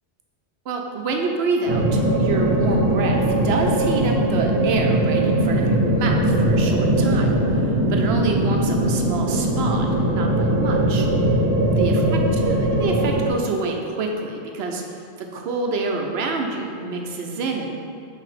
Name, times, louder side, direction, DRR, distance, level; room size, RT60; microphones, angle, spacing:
voice 1, 0.7-11.1 11.8-12.0 12.4-14.8 15.2-17.8, right 3 dB, 70° right, 2 dB, 0.9 m, -27 dB
sound 1, 1.7-13.3, right 1 dB, 50° right, 1.2 m, -20 dB
5.6 x 3.4 x 4.9 m, 2.4 s
omnidirectional pair, 1.1 m